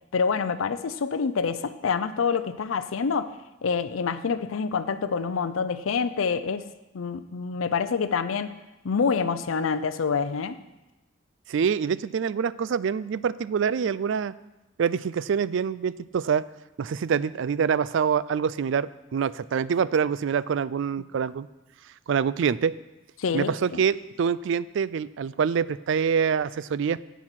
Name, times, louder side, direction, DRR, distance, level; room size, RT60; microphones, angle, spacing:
voice 1, 0.1-3.4 3.6-6.7 6.9-8.6 8.8-10.6 23.2-23.8, left 5 dB, 85° left, 11 dB, 0.5 m, -27 dB
voice 2, 11.5-14.3 14.8-16.4 16.8-21.5 22.1-22.7 23.3-27.0, right 7 dB, 65° right, 18 dB, 0.4 m, -25 dB
10.5 x 8.2 x 5.9 m, 1.0 s
head